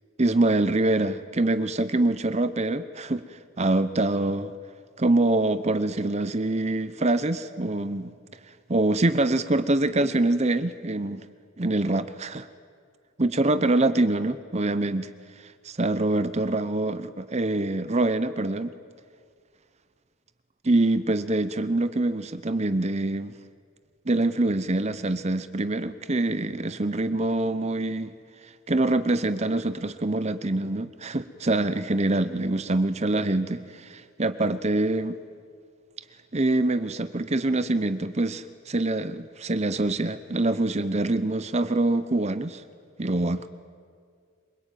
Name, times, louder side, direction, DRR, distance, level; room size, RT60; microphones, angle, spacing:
voice 1, 0.2-4.5 5.0-8.1 8.7-11.2 11.6-12.5 13.2-15.1 15.4-18.7 20.6-23.3 24.1-28.1 28.7-35.2 36.3-42.6 43.0-43.5, right 2 dB, 30° right, 13 dB, 0.8 m, -25 dB
26.0 x 23.5 x 9.2 m, 2.1 s
head